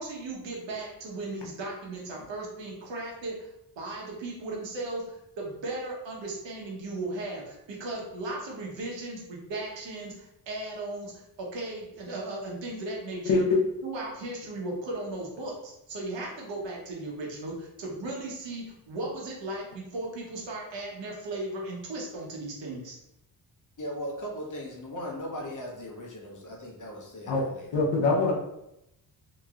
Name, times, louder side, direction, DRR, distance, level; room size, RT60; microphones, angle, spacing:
voice 1, 0.0-3.5 3.8-13.5 13.8-23.0, right 2 dB, 75° right, -2 dB, 1.1 m, -36 dB
voice 2, 13.3-13.6 27.3-27.4 27.7-28.3, left 3 dB, 70° left, -3 dB, 0.9 m, -23 dB
voice 3, 23.8-27.7, equal, 45° left, -1 dB, 1.0 m, -38 dB
2.9 x 2.9 x 2.4 m, 0.85 s
cardioid pair, 65°, 44 cm